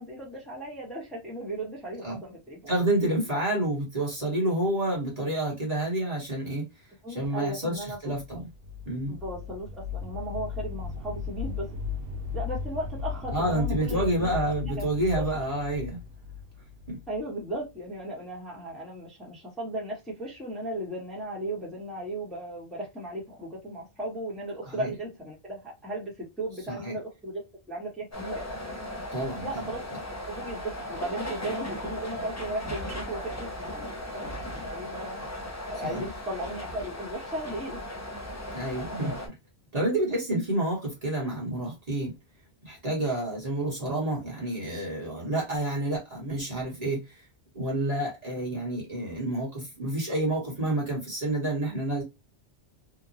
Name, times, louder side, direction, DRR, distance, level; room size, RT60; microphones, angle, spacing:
voice 1, 0.0-2.7 3.3-3.4 7.0-8.2 9.1-11.8 12.3-14.3 14.7-15.0 17.1-28.4 29.4-30.6 30.9-35.2 35.7-37.8, right 1 dB, ahead, 1.0 m, -36 dB
voice 2, 2.7-6.7 7.1-8.5 8.9-9.2 13.3-16.0 16.9-17.0 24.7-24.9 26.7-27.0 29.1-29.7 35.8-36.0 38.5-39.3 39.7-42.1 42.7-47.2 47.5-52.0, right 1 dB, 40° right, 1.2 m, -29 dB
sound 1, 8.0-17.7, left 6 dB, 70° right, 0.7 m, -36 dB
sound 2, 28.1-39.3, left 1 dB, 20° left, 0.5 m, -37 dB
2.9 x 2.2 x 2.5 m
omnidirectional pair, 1.1 m